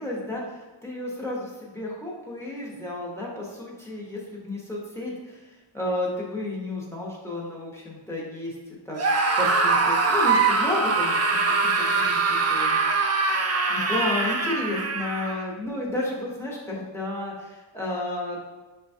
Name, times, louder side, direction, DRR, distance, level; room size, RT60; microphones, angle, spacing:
voice 1, 0.0-5.4 5.7-8.5 8.9-9.0 9.4-12.8 13.1-18.4, left 2 dB, 5° left, -5 dB, 1.0 m, -32 dB
Screaming, 8.9-15.4, right 4 dB, 35° right, 0.4 m, -23 dB
5.7 x 2.3 x 2.7 m, 1.2 s
wide cardioid pair, 65°, 49 cm